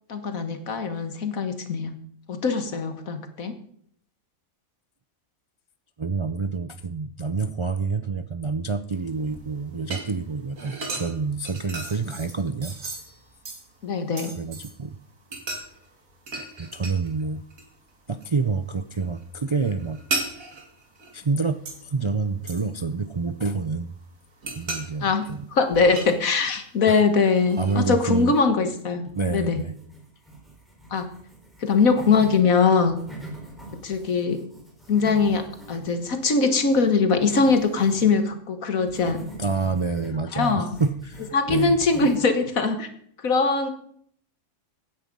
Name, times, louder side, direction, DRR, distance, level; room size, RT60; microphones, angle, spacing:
voice 1, 0.1-2.0 2.3-3.5 13.8-14.3 25.0-29.0 29.3-29.6 30.9-31.0 31.6-33.0 33.8-34.4 34.9-39.2 40.3-40.7 41.3-42.9 43.2-43.7, left 4 dB, 80° left, 8 dB, 1.9 m, -22 dB
voice 2, 6.0-12.8 14.4-15.0 16.6-17.4 18.1-20.0 21.1-23.9 24.5-25.5 26.9-27.0 27.6-28.3 29.1-29.7 39.4-41.8, right 4 dB, 45° right, 10 dB, 0.3 m, -28 dB
sound 1, 9.0-14.8 15.3-17.2 17.5-18.3 18.6-21.9 22.5-23.6 24.0-26.7 27.2-27.9, right 3 dB, 75° right, 2.6 m, -36 dB
sound 2, 27.9-28.7 29.1-32.4 32.8-38.2 38.9-42.3, right 2 dB, ahead, 4.7 m, -42 dB
15.5 x 10.0 x 5.4 m, 0.64 s
omnidirectional pair, 1.4 m